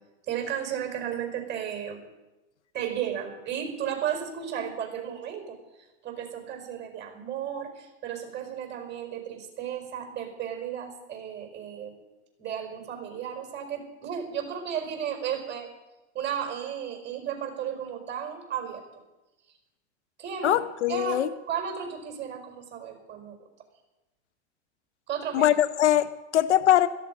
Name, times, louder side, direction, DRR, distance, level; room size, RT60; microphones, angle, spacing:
voice 1, 0.3-2.0 2.7-12.0 12.4-15.7 16.1-18.8 20.2-20.6 20.9-23.4 25.1-25.6, right 9 dB, 30° right, 4 dB, 5.1 m, -34 dB
voice 2, 20.4-21.3 25.3-26.9, left 12 dB, 85° left, 13 dB, 0.9 m, -22 dB
17.0 x 14.0 x 5.4 m, 1.1 s
hypercardioid pair, 115°, 34 cm